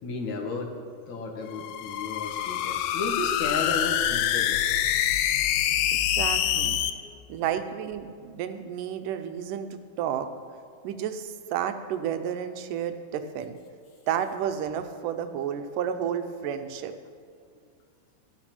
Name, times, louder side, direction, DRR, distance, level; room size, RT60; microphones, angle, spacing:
voice 1, 0.0-0.8 1.1-4.6 5.0-5.1 6.4-6.5 6.8-7.2, left 3 dB, 65° left, 2 dB, 2.8 m, -34 dB
sound 1, 1.5-6.9, left 11 dB, 80° left, 2.2 m, -26 dB
voice 2, 5.9-6.8 7.3-10.3 10.8-13.6 14.1-16.9, right 9 dB, 85° right, 9 dB, 2.4 m, -31 dB
14.5 x 11.5 x 6.1 m, 2.3 s
omnidirectional pair, 3.7 m